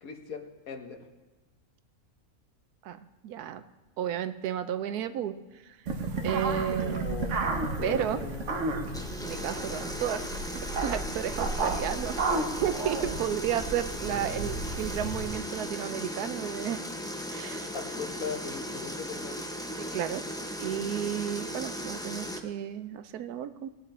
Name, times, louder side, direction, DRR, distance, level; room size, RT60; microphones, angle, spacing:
voice 1, 0.0-1.0 6.7-7.3 7.8-8.3 17.7-19.5, left 6 dB, 70° left, 4 dB, 1.6 m, -39 dB
voice 2, 2.8-3.6 4.0-5.4 5.7-5.8 6.2-7.1 7.8-8.2 9.2-10.2 10.8-12.2 12.6-16.8 17.3-17.7 19.8-20.2 20.6-23.7, right 10 dB, 85° right, 11 dB, 1.2 m, -32 dB
sound 1, 5.9-15.3, right 3 dB, 55° right, 1.3 m, -33 dB
sound 2, 7.9-11.1, left 5 dB, 85° left, 1.2 m, -48 dB
sound 3, 8.9-22.4, equal, 5° left, 0.6 m, -37 dB
19.5 x 9.2 x 4.3 m, 1.1 s
omnidirectional pair, 1.6 m